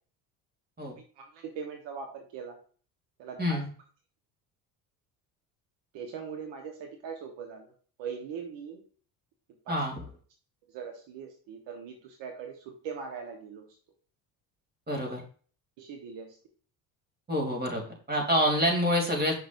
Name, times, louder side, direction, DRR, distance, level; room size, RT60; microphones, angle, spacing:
voice 1, 1.2-2.6 3.2-3.6 5.9-7.7 8.0-8.8 9.7-9.8 10.7-13.7 15.8-16.4, right 6 dB, 65° right, 4 dB, 1.3 m, -40 dB
voice 2, 14.9-15.2 17.3-19.3, equal, 20° right, 1 dB, 3.0 m, -27 dB
7.3 x 6.1 x 2.6 m, 0.42 s
hypercardioid pair, 65°, 46 cm